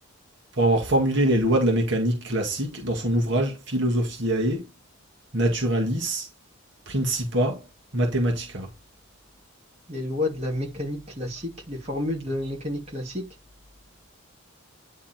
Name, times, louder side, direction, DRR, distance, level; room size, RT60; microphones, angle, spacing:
voice 1, 0.5-4.7 5.3-6.3 6.9-7.6 7.9-8.7, right 1 dB, 55° right, 1.9 m, -24 dB
voice 2, 9.9-13.3, left 1 dB, 30° right, 2.4 m, -30 dB
9.9 x 3.5 x 4.4 m
head